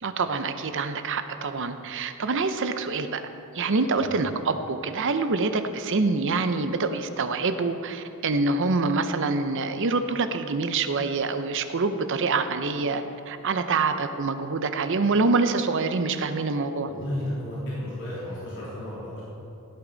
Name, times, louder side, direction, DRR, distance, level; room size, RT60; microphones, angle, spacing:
voice 1, 0.0-3.2 3.5-16.9, right 3 dB, 60° right, 9 dB, 0.7 m, -26 dB
voice 2, 16.9-19.2, left 1 dB, 60° left, -9 dB, 3.4 m, -33 dB
16.0 x 9.6 x 4.0 m, 2.8 s
head